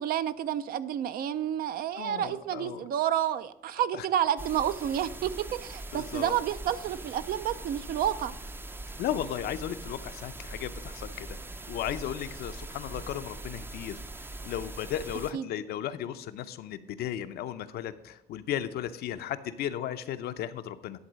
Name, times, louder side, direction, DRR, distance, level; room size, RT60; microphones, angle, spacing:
voice 1, 0.0-8.3 15.3-15.4, right 10 dB, 60° right, 14 dB, 0.5 m, -30 dB
voice 2, 1.9-2.9 3.9-4.1 5.9-6.4 9.0-11.4 11.7-14.0 14.4-21.0, left 10 dB, 70° left, 11 dB, 0.6 m, -35 dB
sound 1, 4.4-15.3, right 2 dB, 15° right, 0.5 m, -42 dB
11.0 x 3.9 x 6.2 m, 0.81 s
cardioid pair, 110°, 17 cm